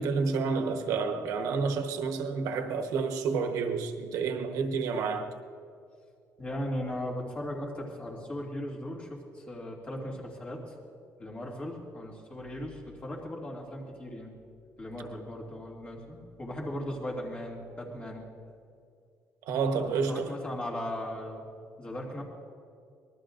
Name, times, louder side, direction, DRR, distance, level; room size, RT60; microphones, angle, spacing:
voice 1, 0.0-5.3 19.4-20.2, right 5 dB, 85° right, 1.1 m, -29 dB
voice 2, 6.4-10.7 11.2-14.3 14.8-18.2 20.1-21.5 21.8-22.2, left 1 dB, 20° left, 2.4 m, -37 dB
25.0 x 20.0 x 2.6 m
cardioid pair, 165°, 6 cm